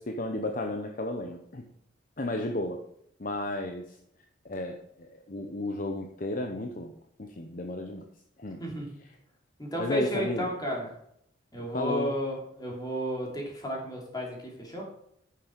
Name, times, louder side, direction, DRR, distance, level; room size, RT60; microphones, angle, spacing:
voice 1, 0.0-1.7 2.2-2.8 3.2-4.0 4.4-6.9 7.2-8.1 8.4-8.6 9.8-10.5 11.6-12.2, left 1 dB, 45° left, 4 dB, 0.8 m, -33 dB
voice 2, 8.6-9.0 9.6-10.9 11.5-14.9, equal, 20° left, -2 dB, 2.8 m, -33 dB
9.6 x 6.7 x 5.2 m, 0.71 s
head